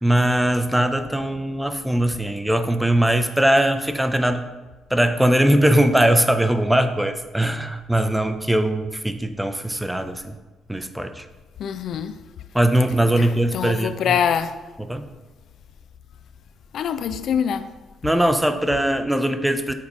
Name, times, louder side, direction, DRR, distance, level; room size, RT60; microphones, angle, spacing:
voice 1, 0.0-4.5 4.9-10.4 10.7-11.2 12.5-14.2 14.9-15.1 18.0-19.7, right 1 dB, 5° right, 0.5 m, -20 dB
voice 2, 11.6-12.2 13.2-14.6 16.7-17.7, left 8 dB, 70° left, 0.3 m, -24 dB
7.2 x 4.0 x 4.8 m
cardioid pair, 90°, 0 cm